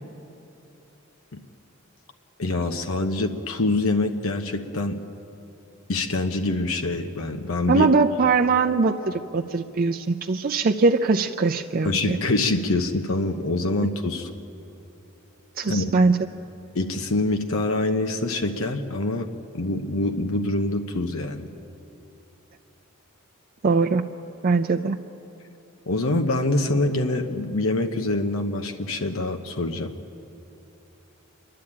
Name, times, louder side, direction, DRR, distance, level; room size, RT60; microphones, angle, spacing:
voice 1, 2.4-5.0 5.9-7.9 11.8-14.3 15.7-15.9 16.7-19.3 19.5-21.5 25.9-29.9, left 2 dB, 80° left, 6 dB, 1.0 m, -25 dB
voice 2, 7.7-12.2 15.6-16.2 23.6-24.0 24.4-25.0, right 4 dB, 45° right, 3 dB, 0.5 m, -21 dB
27.5 x 11.5 x 8.7 m, 2.9 s
head